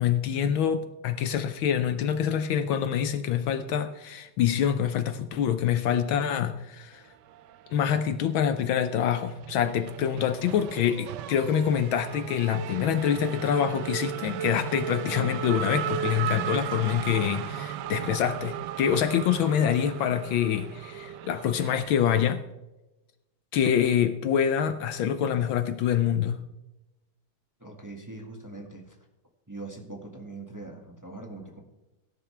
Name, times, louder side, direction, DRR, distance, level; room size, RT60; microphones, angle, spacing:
voice 1, 0.0-7.0 7.7-22.4 23.5-26.4, left 9 dB, 70° left, 11 dB, 1.4 m, -26 dB
Race car auto racing / Accelerating revving vroom, 7.3-8.3 8.6-22.3, right 10 dB, 75° right, 1.0 m, -36 dB
voice 2, 27.6-28.9 29.5-31.6, right 3 dB, 10° right, 1 dB, 1.4 m, -42 dB
17.0 x 10.5 x 3.3 m, 0.99 s
omnidirectional pair, 2.4 m